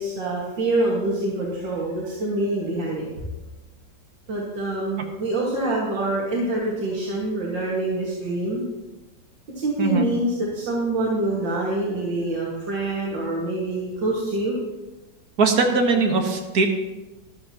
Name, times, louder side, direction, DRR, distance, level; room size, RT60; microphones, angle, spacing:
voice 1, 0.0-3.1 4.3-8.6 9.6-14.6 15.9-16.0, right 2 dB, 85° right, -5 dB, 2.5 m, -25 dB
voice 2, 15.4-16.7, right 3 dB, 60° right, 3 dB, 1.7 m, -20 dB
13.5 x 12.0 x 2.9 m, 1.1 s
omnidirectional pair, 2.0 m